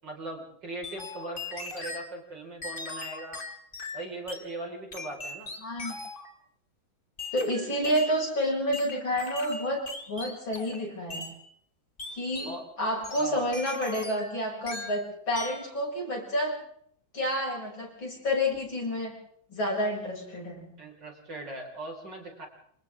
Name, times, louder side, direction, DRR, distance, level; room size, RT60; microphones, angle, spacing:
voice 1, 0.0-3.4 3.9-5.5 12.4-12.6 13.2-13.5 20.8-22.5, right 2 dB, 55° right, 1 dB, 5.9 m, -39 dB
sound 1, 0.8-2.1 2.6-4.5 4.9-6.3 7.2-8.3 8.7-10.8 11.1-11.4 12.0-12.6 13.0-14.3 14.7-15.0 15.3-15.7, left 3 dB, 25° left, 2.5 m, -39 dB
voice 2, 5.6-6.0 7.3-11.3 12.1-12.5 12.8-16.6 17.1-19.1 19.5-20.7, equal, 65° left, 0 dB, 8.0 m, -29 dB
28.5 x 27.5 x 3.7 m, 0.66 s
omnidirectional pair, 2.3 m